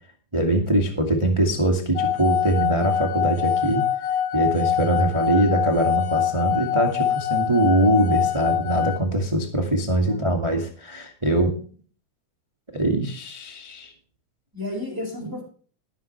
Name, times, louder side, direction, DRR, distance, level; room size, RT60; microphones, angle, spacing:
voice 1, 0.3-3.8 4.3-11.6 12.7-13.9 15.2-15.3, right 1 dB, 20° right, 2 dB, 0.7 m, -22 dB
sound 1, 2.0-9.0, left 10 dB, 85° left, 3.2 m, -24 dB
voice 2, 10.1-10.5 14.5-15.4, left 2 dB, 5° right, -3 dB, 6.4 m, -33 dB
21.0 x 7.4 x 3.3 m, 0.43 s
omnidirectional pair, 4.3 m